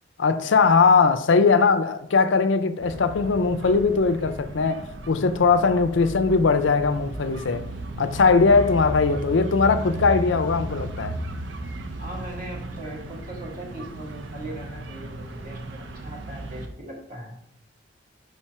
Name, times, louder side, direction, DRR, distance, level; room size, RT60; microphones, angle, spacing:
voice 1, 0.2-7.6 8.0-11.2, left 4 dB, 80° left, 0.5 m, -20 dB
sound 1, 2.8-16.7, right 1 dB, 75° right, 0.7 m, -35 dB
voice 2, 12.0-17.3, right 1 dB, 45° right, 1.7 m, -39 dB
5.7 x 4.3 x 4.6 m
head